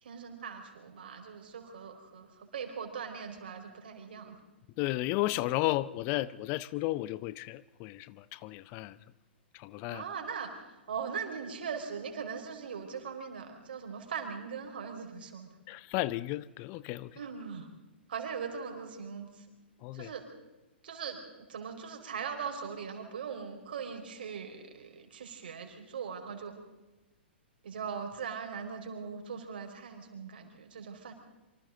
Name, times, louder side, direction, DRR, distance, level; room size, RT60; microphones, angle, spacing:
voice 1, 0.0-4.3 9.9-15.5 17.2-17.7 18.1-19.4 19.9-20.3 20.8-26.6 27.6-31.1, right 6 dB, 60° right, 4.8 m, -40 dB
voice 2, 4.8-9.0 9.5-10.1 15.7-17.2 19.8-20.1, left 17 dB, 35° left, 0.6 m, -33 dB
27.0 x 25.0 x 3.9 m
figure-of-eight pair, 110°, 6 cm